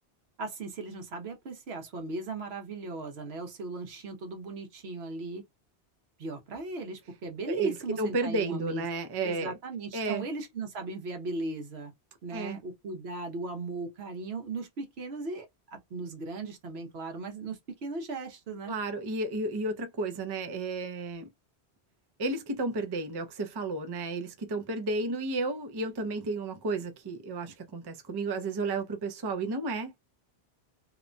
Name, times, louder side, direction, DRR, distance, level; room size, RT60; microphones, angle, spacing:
voice 1, 0.4-5.4 6.2-8.8 9.2-11.9 12.2-18.7, right 3 dB, 75° right, 1.1 m, -37 dB
voice 2, 7.5-9.5 9.9-10.2 12.3-12.6 18.7-21.3 22.2-29.9, right 2 dB, 35° right, 0.4 m, -32 dB
2.9 x 2.1 x 2.5 m
omnidirectional pair, 1.1 m